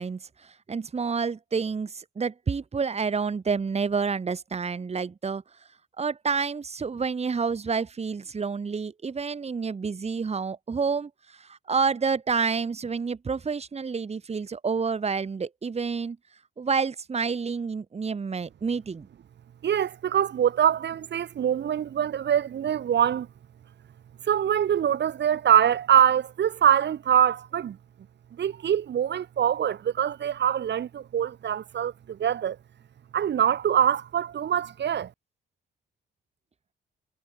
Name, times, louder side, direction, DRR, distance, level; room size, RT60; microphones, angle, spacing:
voice 1, 0.0-5.4 6.0-16.2 16.6-19.1, right 5 dB, 30° right, 2.2 m, -29 dB
voice 2, 19.6-23.3 24.3-27.8 28.4-32.6 33.1-35.1, right 9 dB, 60° right, 4.2 m, -24 dB
cardioid pair, 90°, 20 cm